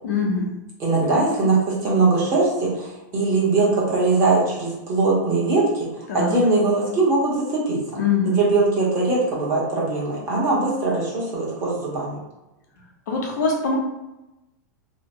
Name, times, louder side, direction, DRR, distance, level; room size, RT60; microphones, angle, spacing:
voice 1, 0.0-0.5 6.1-6.4 7.9-8.4 13.1-13.8, left 5 dB, 65° left, -1 dB, 0.7 m, -23 dB
voice 2, 0.8-5.9 6.1-8.0 8.2-12.2, right 3 dB, 25° right, -6 dB, 1.0 m, -21 dB
2.8 x 2.1 x 2.7 m, 0.98 s
supercardioid pair, 155°, 10 cm